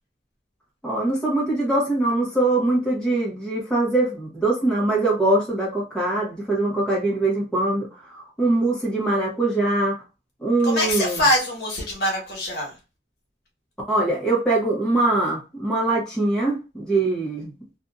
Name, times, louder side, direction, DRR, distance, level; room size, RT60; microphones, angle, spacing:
voice 1, 0.8-10.0 10.4-11.2 13.9-17.5, right 2 dB, 5° left, -4 dB, 0.9 m, -22 dB
voice 2, 10.6-12.7, left 1 dB, 60° left, -1 dB, 1.2 m, -23 dB
2.6 x 2.5 x 2.3 m, 0.29 s
head